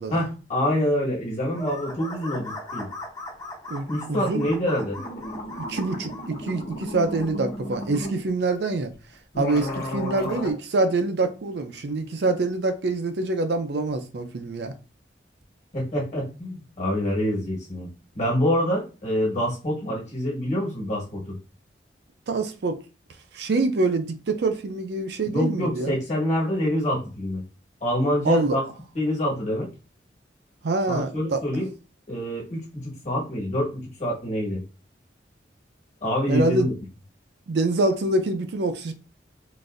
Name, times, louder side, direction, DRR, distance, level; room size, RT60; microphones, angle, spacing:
voice 1, 0.1-2.9 3.9-5.0 15.7-17.9 18.1-21.3 25.3-27.4 27.8-28.6 28.9-29.7 30.9-31.7 32.1-34.6 36.0-36.7, equal, 40° left, 1.3 m, -26 dB
sound 1, 1.5-6.3, left 2 dB, 20° left, 0.7 m, -38 dB
voice 2, 3.7-4.4 5.7-8.9 9.4-14.7 22.3-22.8 23.3-26.0 28.2-28.6 30.6-31.4 36.3-36.7 37.5-38.9, right 2 dB, 65° right, 0.5 m, -25 dB
sound 2, 4.7-4.8 5.0-8.2 8.9-9.0 9.3-10.5, left 1 dB, 55° left, 1.0 m, -33 dB
3.9 x 2.5 x 2.5 m
head